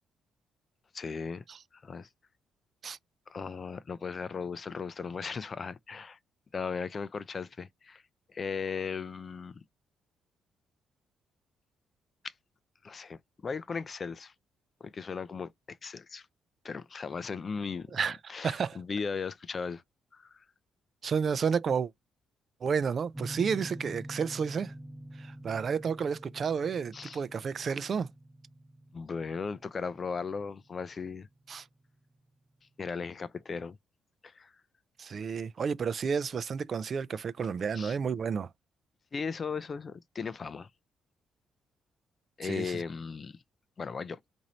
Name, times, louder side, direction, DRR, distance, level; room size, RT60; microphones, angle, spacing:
voice 1, 0.9-1.4 1.8-2.1 3.3-6.2 6.5-8.0 8.3-9.5 12.2-12.3 12.8-14.3 14.8-16.3 16.6-18.0 18.3-19.8 20.1-20.4 26.9-27.2 28.9-31.3 32.8-33.8 34.2-34.5 37.7-38.0 39.1-40.7 42.4-43.4 43.8-44.2, left 5 dB, 40° left, 0.4 m, -37 dB
voice 2, 17.9-18.8 21.0-21.9 22.6-24.7 25.2-28.1 31.5-31.7 35.0-38.5 42.4-42.8, right 6 dB, 50° right, 0.4 m, -31 dB
sound 1, 23.1-31.8, right 1 dB, 15° right, 0.9 m, -46 dB
3.0 x 2.6 x 4.0 m
cardioid pair, 90°, 0 cm